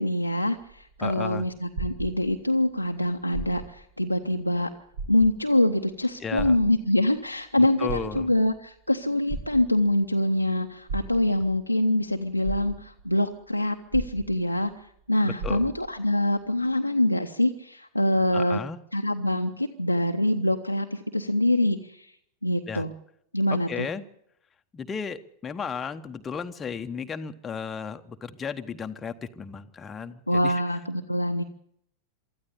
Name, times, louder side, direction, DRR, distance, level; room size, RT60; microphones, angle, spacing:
voice 1, 0.0-4.7 5.1-14.7 15.1-18.6 18.9-22.1 22.4-22.9 23.3-23.9 30.3-31.4, left 1 dB, 90° left, 2 dB, 0.9 m, -25 dB
sound 1, 0.5-2.6 3.2-3.9 4.3-4.4 4.9-5.6 6.4-7.2 7.7-8.6 9.3-10.0 10.9-11.6 12.1-12.2 12.4-13.2 13.9-14.7 15.0-15.1 15.4-16.0 16.7-16.8, right 4 dB, 60° right, 4.3 m, -36 dB
voice 2, 1.0-1.5 6.2-6.6 7.6-8.3 15.3-15.7 18.3-18.8 22.7-22.8 23.7-24.0 24.7-30.6, left 6 dB, 20° left, 7 dB, 1.1 m, -34 dB
24.0 x 14.0 x 8.5 m, 0.72 s
figure-of-eight pair, 90°, 0 cm